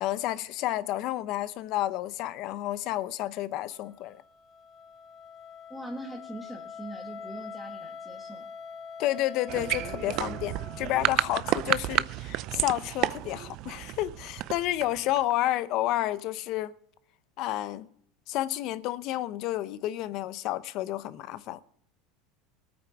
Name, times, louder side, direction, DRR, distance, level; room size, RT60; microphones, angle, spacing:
voice 1, 0.0-4.2 9.0-16.7 17.4-17.9 18.3-21.6, left 14 dB, 50° left, 0.7 m, -30 dB
Wind instrument woodwind instrument, 3.7-11.7, left 5 dB, 25° left, 4.7 m, -44 dB
voice 2, 5.7-8.5, right 1 dB, 5° right, 1.4 m, -42 dB
sound 1, 9.5-15.3, right 16 dB, 50° right, 0.5 m, -31 dB
19.5 x 8.9 x 4.8 m
supercardioid pair, 135°, 0 cm